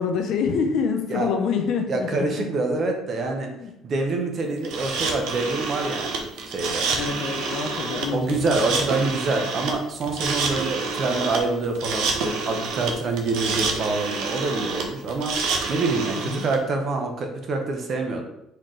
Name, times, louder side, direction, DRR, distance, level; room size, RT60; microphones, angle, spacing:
voice 1, 0.0-2.3 3.6-3.7 6.9-9.1 16.3-16.5, left 6 dB, 50° left, 4 dB, 0.6 m, -27 dB
voice 2, 1.9-3.5 3.8-6.9 8.1-15.3 15.7-18.2, right 3 dB, 35° right, 3 dB, 0.7 m, -26 dB
sound 1, 4.6-16.6, right 4 dB, 75° right, 0.7 m, -28 dB
4.4 x 3.8 x 3.1 m, 0.82 s
cardioid pair, 175°, 0 cm